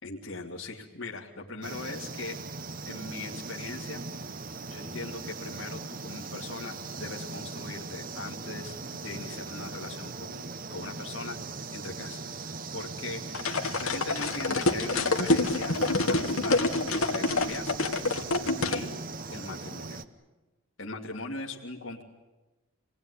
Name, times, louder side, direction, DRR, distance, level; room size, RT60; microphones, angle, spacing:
voice 1, 0.0-2.4 2.8-4.0 4.7-11.4 11.7-15.7 16.1-16.6 16.9-17.9 18.7-18.9 19.3-20.0 20.8-22.0, left 3 dB, 60° left, -1 dB, 2.2 m, -40 dB
sound 1, 1.6-20.0, right 3 dB, 40° right, 1.0 m, -39 dB
sound 2, 13.3-18.8, left 2 dB, 75° left, 2.0 m, -27 dB
28.0 x 19.0 x 9.8 m, 1.1 s
head